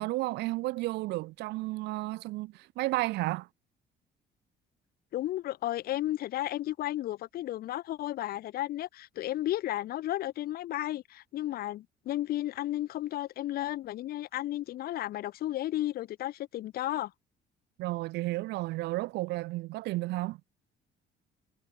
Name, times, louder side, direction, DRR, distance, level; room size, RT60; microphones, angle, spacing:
voice 1, 0.0-3.5 17.8-20.4, right 19 dB, 85° right, 1.0 m, -32 dB
voice 2, 5.1-17.1, left 14 dB, 65° left, 0.8 m, -33 dB
cardioid pair, 110°, 17 cm